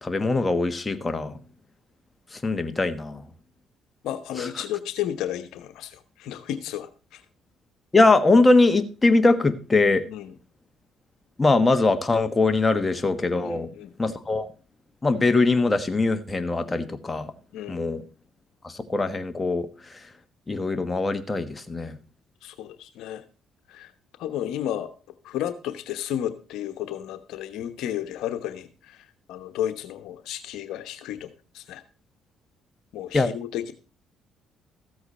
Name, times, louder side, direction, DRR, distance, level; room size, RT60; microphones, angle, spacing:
voice 1, 0.0-1.4 2.3-3.2 4.4-4.5 7.9-10.0 11.4-13.7 14.0-14.5 15.0-17.3 17.7-18.0 18.6-19.7 20.5-22.0 33.1-33.3, left 3 dB, 20° left, 8 dB, 1.3 m, -22 dB
voice 2, 4.0-7.2 10.1-10.3 13.4-13.9 17.5-17.8 22.4-23.2 23.7-23.9 24.2-24.9 25.2-31.8 32.9-33.7, left 11 dB, 75° left, 9 dB, 1.0 m, -33 dB
14.0 x 7.9 x 4.3 m, 0.36 s
supercardioid pair, 70°, 0 cm